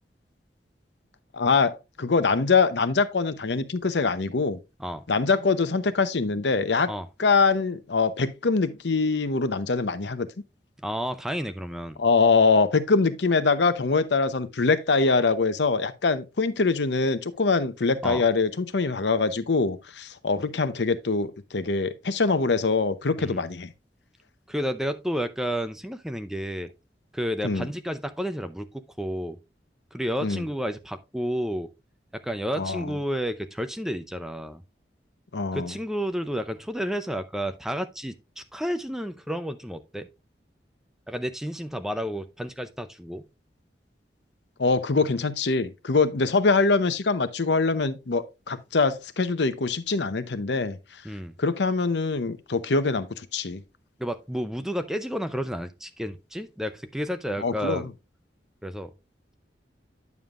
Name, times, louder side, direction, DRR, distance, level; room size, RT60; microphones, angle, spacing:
voice 1, 1.3-4.6 5.1-6.9 7.2-10.3 12.0-23.7 27.4-27.7 30.2-30.4 32.6-32.9 35.3-35.7 44.6-50.8 51.4-53.6 57.4-57.9, left 4 dB, 80° left, 0.8 m, -23 dB
voice 2, 10.8-12.0 18.0-18.2 23.2-23.4 24.5-26.7 27.1-29.4 29.9-31.7 32.1-34.6 35.5-40.1 41.1-43.2 51.0-51.3 54.0-57.9 58.6-58.9, equal, 5° right, 0.5 m, -31 dB
9.5 x 7.0 x 2.4 m
head